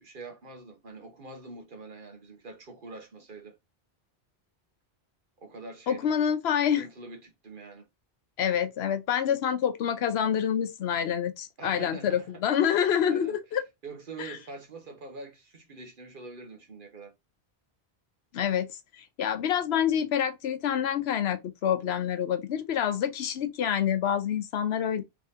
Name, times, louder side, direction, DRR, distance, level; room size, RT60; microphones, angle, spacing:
voice 1, 0.0-3.6 5.4-6.1 6.7-7.9 11.6-12.4 13.0-13.4 13.8-17.1, right 3 dB, 55° right, 1.3 m, -44 dB
voice 2, 5.9-6.9 8.4-13.6 14.2-14.3 18.3-18.7 19.0-25.0, left 9 dB, 80° left, 0.9 m, -27 dB
3.6 x 3.3 x 2.7 m
omnidirectional pair, 1.1 m